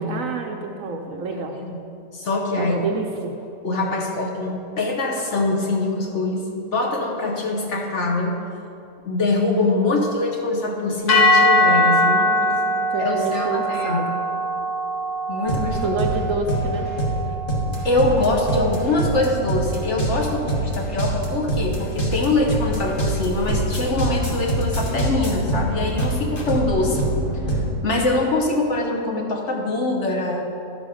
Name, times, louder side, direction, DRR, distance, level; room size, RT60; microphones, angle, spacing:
voice 1, 0.0-1.6 2.6-3.3 12.0-14.1 15.8-16.9, right 3 dB, 65° right, 3 dB, 0.9 m, -28 dB
voice 2, 2.1-2.8 3.6-8.4 9.0-12.3 13.0-14.1 15.3-16.0 17.8-27.1 27.8-30.5, left 2 dB, 50° left, 0 dB, 1.1 m, -23 dB
sound 1, 11.1-19.4, left 1 dB, 75° left, 1.7 m, -22 dB
sound 2, 15.5-27.7, right 1 dB, 35° left, 1.4 m, -25 dB
11.5 x 5.7 x 5.0 m, 2.7 s
omnidirectional pair, 1.7 m